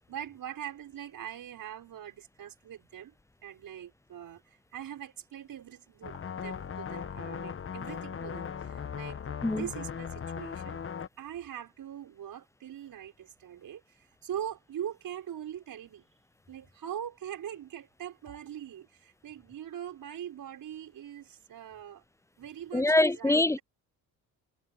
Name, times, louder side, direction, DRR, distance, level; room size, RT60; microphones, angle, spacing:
voice 1, 0.0-3.1 3.4-10.8 11.2-16.0 16.5-22.0 22.4-23.6, right 10 dB, 60° right, 5.6 m, -42 dB
sound 1, 6.0-11.1, left 7 dB, 35° left, 1.1 m, -38 dB
voice 2, 22.7-23.6, left 2 dB, 10° left, 0.5 m, -24 dB
supercardioid pair, 75°, 38 cm